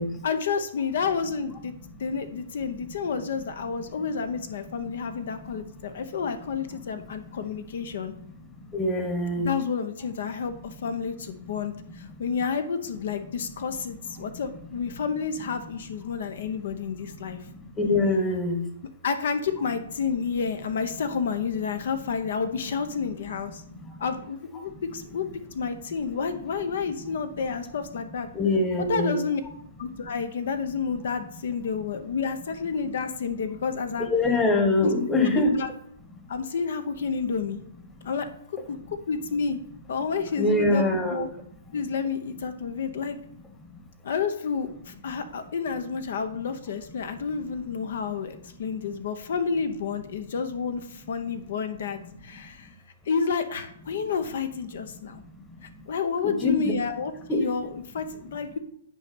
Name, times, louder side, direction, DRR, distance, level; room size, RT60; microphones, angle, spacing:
voice 1, 0.2-1.7 2.0-8.1 9.4-17.4 19.0-23.6 24.0-25.2 25.5-28.3 28.9-29.4 29.8-34.1 34.8-35.0 35.3-35.7 36.3-37.6 38.0-39.6 39.9-41.3 41.7-43.2 44.0-52.7 53.0-55.2 55.6-58.6, left 5 dB, 65° left, 9 dB, 0.8 m, -30 dB
voice 2, 8.7-9.5 17.8-18.6 28.3-29.2 34.1-35.5 40.4-41.3 56.2-56.6 57.3-57.4, left 2 dB, 10° left, 4 dB, 1.1 m, -23 dB
9.5 x 4.2 x 5.3 m, 0.71 s
hypercardioid pair, 150°, 0 cm